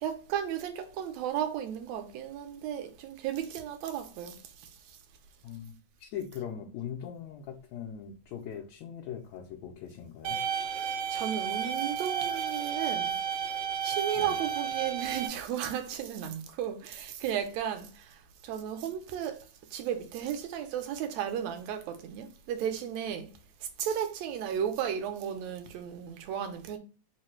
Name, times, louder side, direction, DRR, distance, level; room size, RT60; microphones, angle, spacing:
voice 1, 0.0-4.4 10.8-13.1 13.8-18.2 18.4-23.3 23.8-26.8, right 9 dB, 75° right, 1.9 m, -34 dB
voice 2, 5.4-10.4 14.1-14.4, left 8 dB, 75° left, 1.9 m, -41 dB
sound 1, 10.2-15.3, right 7 dB, 90° right, 2.1 m, -32 dB
4.8 x 2.2 x 4.3 m
omnidirectional pair, 3.4 m